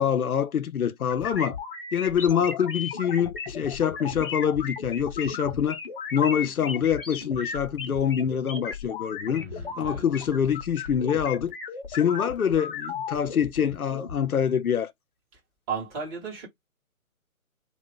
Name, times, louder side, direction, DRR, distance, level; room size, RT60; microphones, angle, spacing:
voice 1, 0.0-1.6 1.9-5.8 6.1-9.5 9.8-11.5 11.9-14.9, left 8 dB, 90° left, 0.6 m, -25 dB
sound 1, 1.1-14.1, left 5 dB, 40° left, 0.8 m, -36 dB
voice 2, 9.2-10.0 15.7-16.5, right 5 dB, 15° right, 0.9 m, -35 dB
2.8 x 2.3 x 3.5 m
figure-of-eight pair, 145°, 42 cm